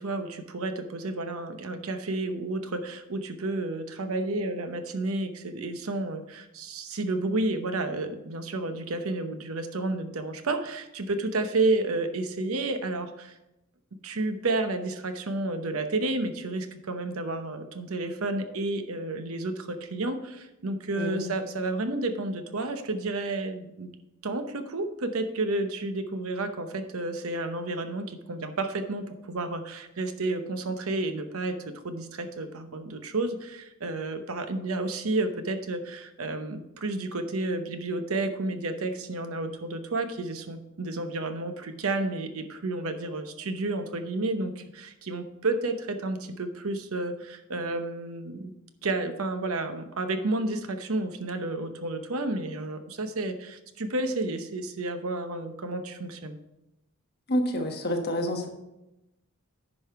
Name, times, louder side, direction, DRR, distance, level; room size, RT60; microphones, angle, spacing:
voice 1, 0.0-13.4 14.0-23.9 24.2-48.5 48.8-56.4, right 2 dB, 70° right, 8 dB, 0.9 m, -31 dB
voice 2, 21.0-21.3 57.3-58.5, equal, 50° left, 2 dB, 1.4 m, -28 dB
10.0 x 5.5 x 4.7 m, 0.93 s
head